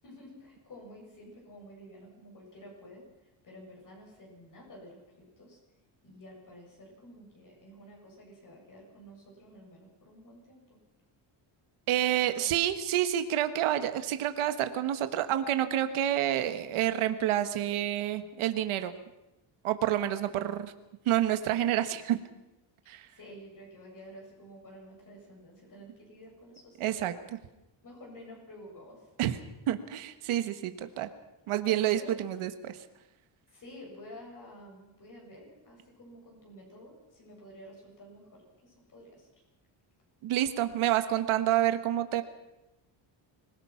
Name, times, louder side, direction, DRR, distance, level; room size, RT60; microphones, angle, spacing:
voice 1, 0.0-3.1 3.4-5.6 6.0-10.8 12.4-12.5 22.8-27.1 27.8-29.1 31.8-32.1 33.5-39.3, equal, 40° left, -1 dB, 7.7 m, -51 dB
voice 2, 11.9-18.9 19.6-20.7 21.0-22.2 22.9-23.1 26.8-27.1 29.2-29.4 29.7-31.1 31.5-32.8 40.2-42.2, right 12 dB, 85° right, 9 dB, 1.6 m, -28 dB
25.5 x 18.0 x 5.9 m, 0.97 s
cardioid pair, 145°, 48 cm